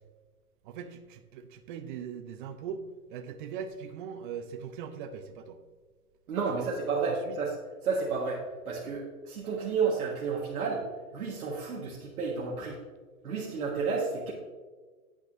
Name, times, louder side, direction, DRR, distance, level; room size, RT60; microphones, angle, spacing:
voice 1, 0.6-2.8 3.1-5.6 6.4-6.7 7.0-7.4, right 7 dB, 35° right, 8 dB, 0.6 m, -40 dB
voice 2, 6.3-7.5 7.8-10.9 11.1-12.8 13.2-14.3, right 5 dB, 70° right, -4 dB, 1.6 m, -31 dB
8.8 x 8.3 x 2.6 m, 1.4 s
hypercardioid pair, 135°, 46 cm